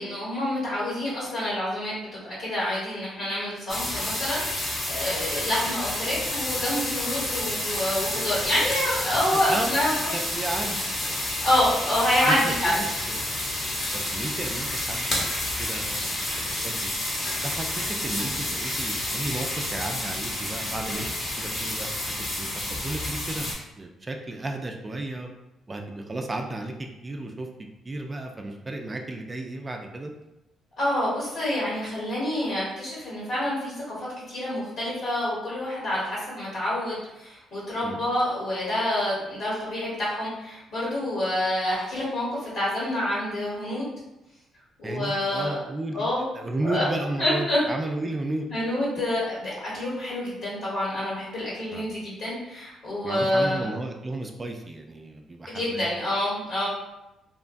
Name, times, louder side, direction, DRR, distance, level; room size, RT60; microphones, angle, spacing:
voice 1, 0.0-10.2 11.4-12.8 30.8-43.9 44.8-45.6 45.9-46.2 46.6-46.8 47.2-47.6 48.5-53.7 55.5-56.7, left 1 dB, 65° left, -7 dB, 1.2 m, -27 dB
sound 1, 3.7-23.5, left 1 dB, 50° left, 0.9 m, -30 dB
voice 2, 9.3-9.8 10.1-10.9 12.3-13.2 13.9-16.3 16.6-16.9 17.4-21.1 21.4-21.9 22.3-23.5 23.8-25.3 25.7-27.5 27.8-30.1 37.8-38.0 44.8-46.1 46.3-48.5 51.7-51.9 53.0-55.9, right 2 dB, 25° right, 3 dB, 0.3 m, -33 dB
2.9 x 2.2 x 2.5 m, 0.95 s
cardioid pair, 90°, 0 cm